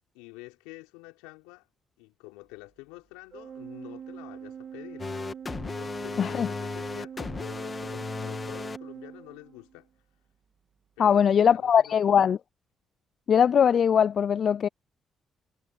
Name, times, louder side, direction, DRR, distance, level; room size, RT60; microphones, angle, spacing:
voice 1, 0.1-1.7 2.0-5.3 5.8-9.9 11.0-12.2, left 24 dB, 90° left, 5.5 m, -48 dB
Organ, 3.3-9.9, right 8 dB, 55° right, 1.6 m, -43 dB
sound 1, 5.0-8.8, left 4 dB, 35° left, 1.7 m, -35 dB
voice 2, 6.2-6.5 11.0-12.4 13.3-14.7, left 8 dB, 60° left, 0.3 m, -21 dB
supercardioid pair, 50°, 0 cm